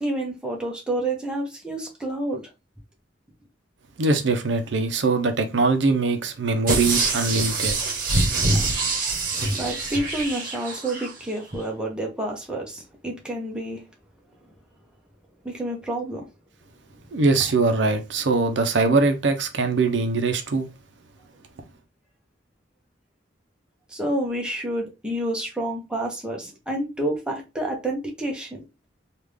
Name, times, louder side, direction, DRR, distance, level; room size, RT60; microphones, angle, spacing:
voice 1, 0.0-2.4 9.6-13.8 15.4-16.2 23.9-28.6, right 1 dB, 5° right, 0.8 m, -29 dB
voice 2, 4.0-7.8 17.1-20.7, right 3 dB, 75° right, 0.6 m, -22 dB
sound 1, 6.7-11.1 11.5-11.6, right 3 dB, 50° right, 1.0 m, -25 dB
3.5 x 2.4 x 3.2 m
head